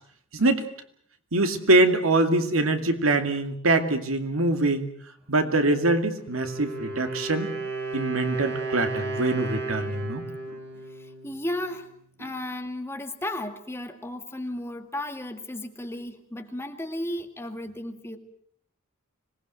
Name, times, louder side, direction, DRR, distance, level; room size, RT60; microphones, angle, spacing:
voice 1, 0.3-0.6 1.3-4.9 5.3-7.5 7.9-10.2, right 2 dB, 70° right, 8 dB, 2.4 m, -23 dB
Wind instrument woodwind instrument, 6.2-11.9, right 3 dB, 55° right, 6.5 m, -34 dB
voice 2, 11.2-11.9 12.2-18.2, left 1 dB, 10° left, 6 dB, 1.9 m, -34 dB
26.0 x 19.5 x 7.9 m, 0.63 s
head